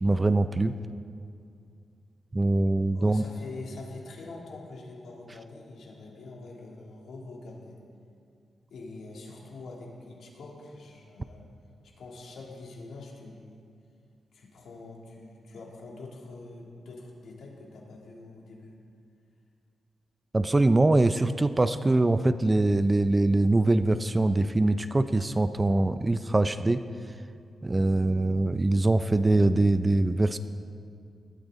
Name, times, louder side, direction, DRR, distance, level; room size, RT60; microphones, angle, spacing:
voice 1, 0.0-0.7 2.3-3.2 20.3-26.8 27.6-30.4, right 2 dB, 15° right, 11 dB, 0.4 m, -23 dB
voice 2, 2.9-7.8 8.7-11.5 12.0-13.6 14.3-18.8, left 3 dB, 75° left, -2 dB, 3.0 m, -44 dB
19.5 x 13.0 x 4.1 m, 2.4 s
wide cardioid pair, 145°, 0 cm